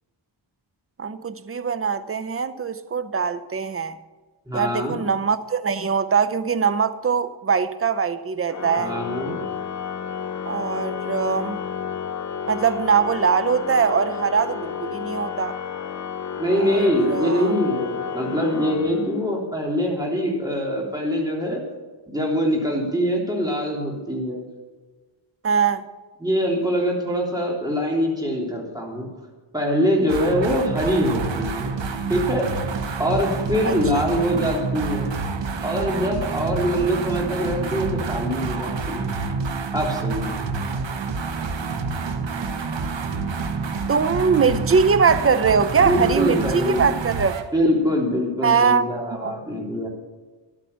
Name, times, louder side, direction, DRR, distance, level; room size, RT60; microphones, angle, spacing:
voice 1, 1.0-4.0 4.5-8.9 10.5-11.6 12.5-15.6 16.5-17.5 25.4-25.8 33.6-33.7 43.9-47.3 48.4-49.3, right 6 dB, 30° right, 0.6 m, -22 dB
voice 2, 4.5-5.0 8.8-9.4 16.4-21.6 22.1-24.4 26.2-29.1 29.5-31.8 32.1-32.5 33.0-35.1 35.6-39.1 39.7-40.5 45.8-46.9 47.5-49.9, equal, 10° right, 3.3 m, -23 dB
Organ, 8.5-19.4, left 7 dB, 40° left, 0.5 m, -31 dB
sound 1, 30.1-47.5, right 4 dB, 65° right, 1.1 m, -28 dB
11.5 x 8.8 x 6.8 m
wide cardioid pair, 100°, 48 cm